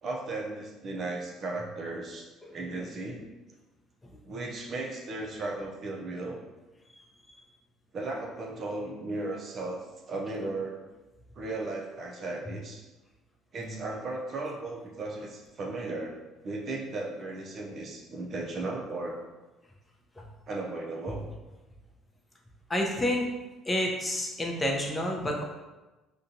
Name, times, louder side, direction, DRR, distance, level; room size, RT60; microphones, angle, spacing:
voice 1, 0.0-2.3 2.5-3.2 4.2-6.4 7.9-10.9 11.4-12.8 13.5-16.2 16.4-19.2 20.5-21.3, right 2 dB, 45° right, 0 dB, 0.6 m, -36 dB
voice 2, 22.7-23.3 23.7-25.4, left 1 dB, 20° left, 0 dB, 0.6 m, -29 dB
3.7 x 2.3 x 2.7 m, 1.1 s
figure-of-eight pair, 55°, 0 cm